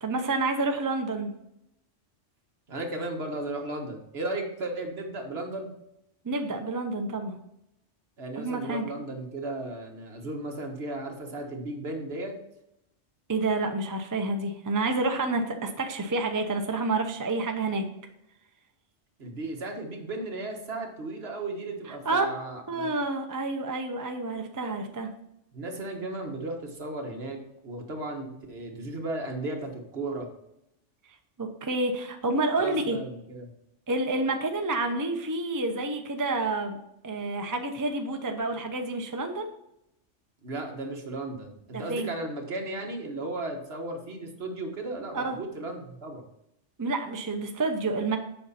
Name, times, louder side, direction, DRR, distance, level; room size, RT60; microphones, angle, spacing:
voice 1, 0.0-1.3 6.2-7.4 8.4-8.8 13.3-17.9 21.9-22.3 22.7-25.1 31.4-33.0 33.9-36.8 37.0-39.5 41.7-42.1 45.1-45.4 46.8-48.2, right 2 dB, 20° right, 5 dB, 0.6 m, -29 dB
voice 2, 2.7-5.7 8.2-12.3 19.2-22.9 25.5-30.3 32.6-33.5 40.4-46.3, right 2 dB, 60° right, 3 dB, 1.5 m, -35 dB
7.8 x 5.6 x 4.2 m, 0.80 s
omnidirectional pair, 1.2 m